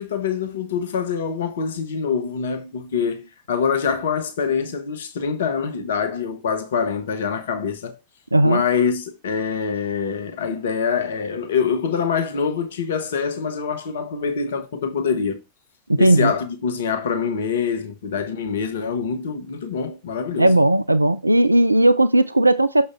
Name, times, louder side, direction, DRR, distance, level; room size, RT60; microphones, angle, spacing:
voice 1, 0.0-8.0 8.4-15.4 16.0-20.5, left 6 dB, 60° left, 1.1 m, -25 dB
voice 2, 8.3-8.6 15.9-16.3 20.4-22.9, right 1 dB, 85° right, 0.3 m, -16 dB
6.6 x 5.5 x 3.5 m
figure-of-eight pair, 90°, 0 cm